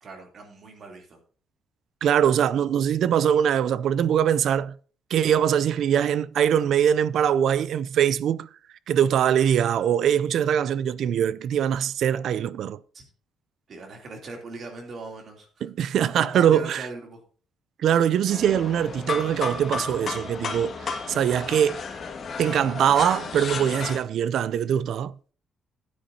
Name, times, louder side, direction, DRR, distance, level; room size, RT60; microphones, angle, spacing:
voice 1, 0.0-1.2 12.9-13.0 13.7-15.5 16.2-17.2, right 3 dB, 50° right, 3.0 m, -39 dB
voice 2, 2.0-4.7 5.1-8.5 8.9-12.8 15.6-16.9 17.8-21.8 22.4-25.1, right 9 dB, 70° right, 0.4 m, -22 dB
sound 1, 18.3-24.0, left 4 dB, 45° left, 1.8 m, -33 dB
15.5 x 9.4 x 2.8 m
cardioid pair, 115°, 0 cm